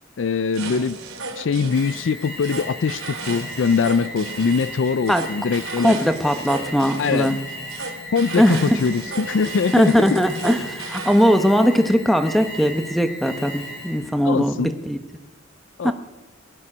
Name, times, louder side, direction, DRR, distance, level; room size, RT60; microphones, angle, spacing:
voice 1, 0.2-1.0 1.4-6.0 7.0-7.4 8.1-10.2 14.2-14.7 15.8-15.9, left 5 dB, 70° left, 0.4 m, -22 dB
sound 1, 0.5-11.3, right 3 dB, 85° right, 3.2 m, -35 dB
Alarm, 1.7-14.1, left 1 dB, 50° left, 6.9 m, -36 dB
voice 2, 5.8-7.4 8.4-8.7 9.7-15.0 15.8-15.9, equal, ahead, 0.9 m, -19 dB
20.0 x 11.5 x 6.1 m
head